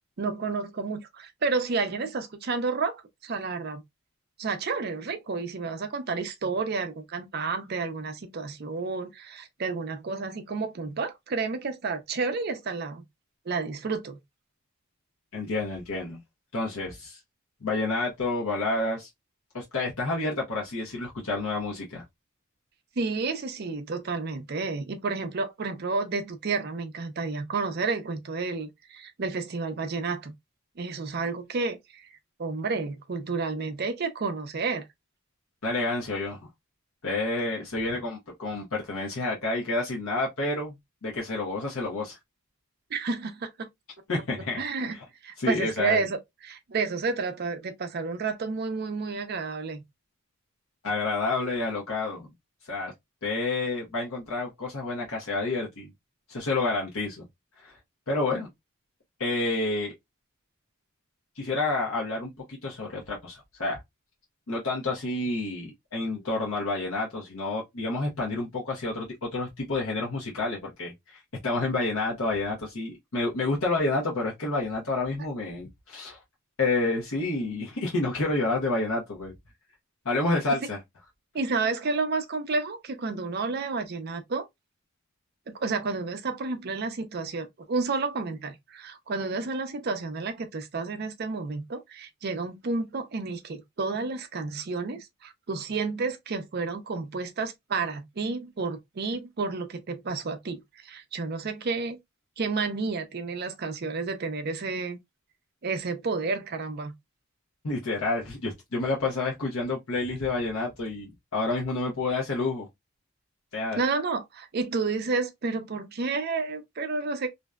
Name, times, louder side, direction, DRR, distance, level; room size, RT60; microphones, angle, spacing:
voice 1, 0.2-3.8 4.4-13.0 13.5-14.2 23.0-30.3 30.8-32.1 32.4-34.8 42.9-43.5 44.6-45.0 45.2-49.8 81.3-84.4 85.6-102.0 102.4-105.0 105.6-106.9 113.8-117.3, right 4 dB, 45° right, 0.5 m, -31 dB
voice 2, 15.3-16.2 16.5-17.2 17.6-19.1 19.5-22.0 35.6-36.4 37.0-40.8 41.0-42.2 44.1-44.6 45.4-46.1 50.8-52.3 52.7-52.9 53.2-55.9 56.3-57.2 57.6-57.7 58.1-58.5 59.2-59.9 61.4-63.8 64.5-76.2 76.6-79.3 80.0-80.8 107.6-112.7 113.5-113.8, left 2 dB, 70° left, 0.7 m, -29 dB
2.6 x 2.1 x 2.2 m
head